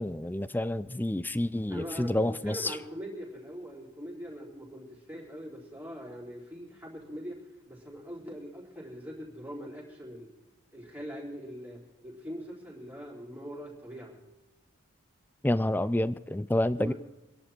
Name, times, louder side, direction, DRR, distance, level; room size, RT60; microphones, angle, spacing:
voice 1, 0.0-2.8 15.4-16.9, left 1 dB, 10° left, 16 dB, 0.4 m, -29 dB
voice 2, 1.7-7.4 7.7-10.3 10.7-11.8 12.0-14.2 16.8-16.9, equal, 10° right, -4 dB, 4.2 m, -42 dB
25.5 x 11.0 x 4.5 m, 1.1 s
head